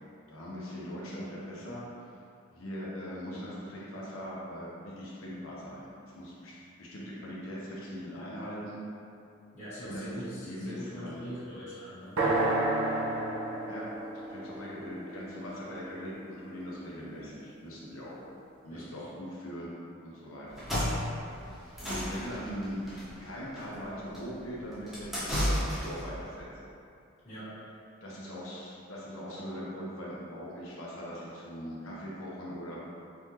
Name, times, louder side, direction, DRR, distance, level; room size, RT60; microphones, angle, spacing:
voice 1, 0.3-1.8 2.5-8.8 9.8-10.2 10.4-11.2 13.7-18.2 18.6-19.7 20.0-20.6 21.4-21.5 21.8-22.8 23.2-26.5 28.0-32.8, equal, 85° left, -6 dB, 1.0 m, -41 dB
voice 2, 9.5-12.2 18.7-19.1 27.2-27.5, equal, 35° left, -16 dB, 1.4 m, -42 dB
sound 1, 12.2-16.1, right 2 dB, 85° right, 0.7 m, -31 dB
sound 2, 20.5-26.1, equal, ahead, 1.0 m, -33 dB
4.4 x 3.7 x 3.0 m, 2.6 s
head